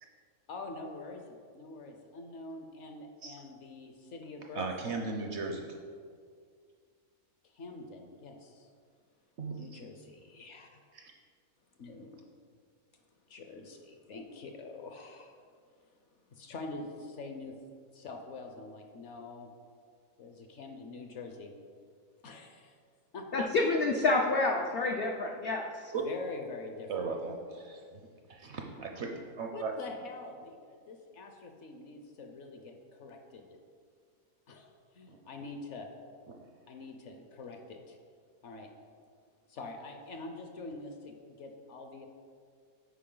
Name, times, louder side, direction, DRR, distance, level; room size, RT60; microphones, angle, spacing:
voice 1, 0.5-4.7 7.4-8.7 9.5-10.8 11.8-12.2 13.3-15.4 16.3-17.5 17.9-19.5 20.2-21.5 22.2-22.8 23.1-23.5 26.0-27.1 28.7-28.8 29.5-33.6 34.5-35.9 36.7-38.0 38.4-38.7 39.5-42.1, left 3 dB, 60° left, 4 dB, 0.8 m, -45 dB
voice 2, 4.5-5.7 9.4-9.5 10.9-11.1 25.9-26.0 26.9-28.0 28.3-29.1 29.4-29.7, right 4 dB, 60° right, 2 dB, 0.7 m, -37 dB
voice 3, 23.3-25.9, left 2 dB, 80° left, 1 dB, 0.5 m, -28 dB
8.4 x 5.0 x 3.8 m, 2.1 s
omnidirectional pair, 1.6 m